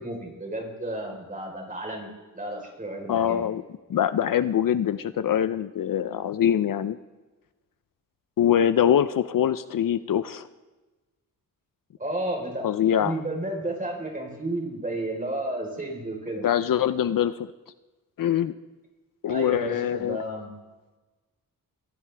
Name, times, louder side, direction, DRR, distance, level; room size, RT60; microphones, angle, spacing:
voice 1, 0.0-3.5 12.0-12.7 13.0-16.5 19.3-20.6, right 1 dB, 25° right, 1 dB, 4.1 m, -32 dB
voice 2, 3.1-3.6 3.9-7.0 8.4-10.5 12.6-13.1 16.4-17.5 18.2-18.5 19.2-20.2, left 9 dB, 65° left, 13 dB, 0.6 m, -23 dB
23.5 x 16.0 x 3.4 m, 1.2 s
wide cardioid pair, 115°, 35 cm